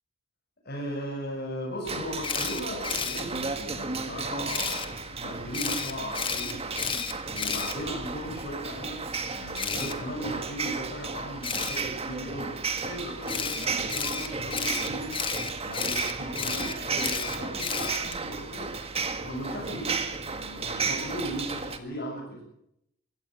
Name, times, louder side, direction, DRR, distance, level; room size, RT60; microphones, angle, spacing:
voice 1, 0.6-6.6 7.3-9.0 9.3-15.1 15.6-18.7 19.2-22.4, equal, 45° left, -4 dB, 7.6 m, -37 dB
sound 1, 1.9-21.8, right 4 dB, 25° right, 1.9 m, -34 dB
Camera, 2.2-3.2 4.5-4.9 5.5-8.3 9.6-9.9 11.4-11.8 13.3-18.2, left 6 dB, 25° left, 1.9 m, -32 dB
24.5 x 17.0 x 8.0 m, 0.78 s
head